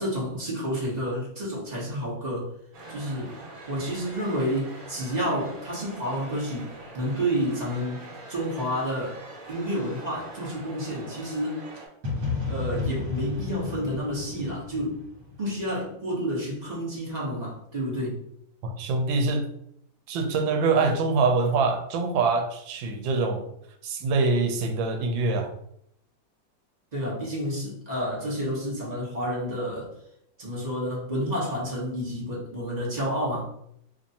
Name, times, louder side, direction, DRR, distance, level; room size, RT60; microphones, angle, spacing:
voice 1, 0.0-2.5 2.9-3.4 3.7-9.2 9.5-11.6 12.5-15.0 15.4-18.2 26.9-29.9 30.4-33.5, equal, 35° right, -5 dB, 0.8 m, -30 dB
sound 1, 2.7-11.9, right 2 dB, 55° right, 1.3 m, -43 dB
sound 2, 12.0-15.9, left 4 dB, 70° right, 1.7 m, -32 dB
voice 2, 18.6-19.4 20.1-23.5 23.8-25.5, right 3 dB, 85° right, 5 dB, 1.4 m, -24 dB
2.9 x 2.6 x 4.0 m, 0.72 s
omnidirectional pair, 2.0 m